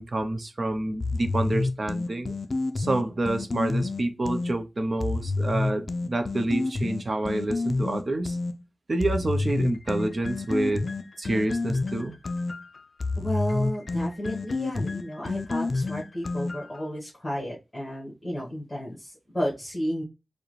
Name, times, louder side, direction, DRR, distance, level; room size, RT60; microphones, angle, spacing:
voice 1, 0.0-2.4 2.8-8.4 8.9-10.9 11.2-12.2, right 2 dB, 45° right, 0.6 m, -28 dB
sound 1, 1.0-4.5 5.0-8.5 9.0-16.8, left 3 dB, 50° left, 0.4 m, -29 dB
voice 2, 13.2-20.0, equal, 20° left, 1.6 m, -32 dB
4.7 x 2.2 x 3.1 m
wide cardioid pair, 110°, 0 cm